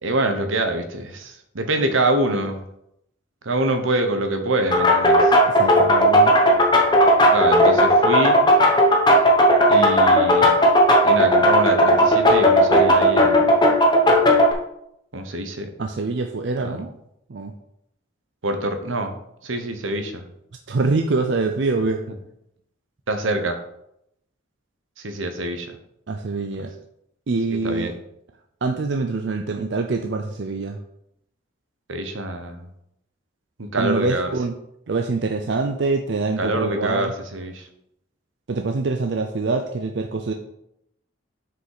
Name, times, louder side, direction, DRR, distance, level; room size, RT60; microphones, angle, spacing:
voice 1, 0.0-2.6 3.4-5.3 7.3-8.5 9.7-10.5 11.0-13.5 15.1-15.7 16.6-16.8 18.4-19.1 19.4-20.2 23.1-23.6 25.0-25.8 27.6-28.0 31.9-32.7 33.6-34.3 36.4-37.7, right 1 dB, 80° right, 6 dB, 1.0 m, -25 dB
sound 1, 4.7-14.5, equal, 20° left, 0.9 m, -15 dB
voice 2, 5.5-6.3 15.8-16.9 17.3-17.5 20.7-22.0 26.1-26.7 27.3-27.9 28.6-30.8 33.8-34.5 34.9-37.1 38.5-40.3, right 3 dB, 60° right, 5 dB, 0.5 m, -24 dB
6.5 x 5.1 x 4.8 m, 0.78 s
head